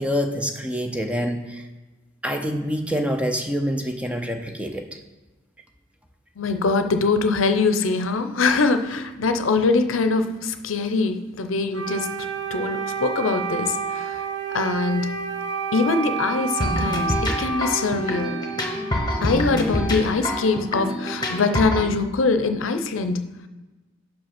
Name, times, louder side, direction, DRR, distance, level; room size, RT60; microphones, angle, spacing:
voice 1, 0.0-1.6 2.2-4.9, equal, 5° right, 5 dB, 0.6 m, -26 dB
voice 2, 6.4-12.1 12.5-14.2 14.5-15.1 15.7-18.3 19.2-23.2, left 4 dB, 85° left, 8 dB, 0.6 m, -23 dB
Wind instrument woodwind instrument, 11.7-19.4, right 5 dB, 65° right, 1.1 m, -30 dB
sound 1, 16.6-21.9, left 1 dB, 20° left, 1.1 m, -26 dB
5.7 x 5.2 x 5.8 m, 1.2 s
head